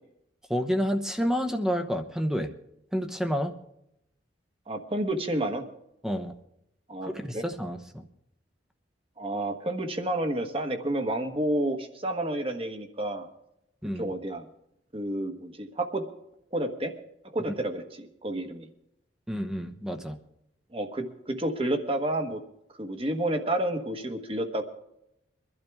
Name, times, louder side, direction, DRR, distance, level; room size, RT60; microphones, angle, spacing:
voice 1, 0.5-2.5 2.9-3.5 6.0-6.3 7.0-8.0 13.8-14.1 19.3-20.2, equal, 5° right, 6 dB, 0.9 m, -29 dB
voice 2, 4.7-5.6 6.9-7.4 9.2-13.3 13.9-14.5 14.9-16.0 16.5-16.9 17.3-18.7 20.7-22.4 22.8-24.6, right 1 dB, 30° right, 5 dB, 1.4 m, -30 dB
23.0 x 12.0 x 3.6 m, 0.81 s
head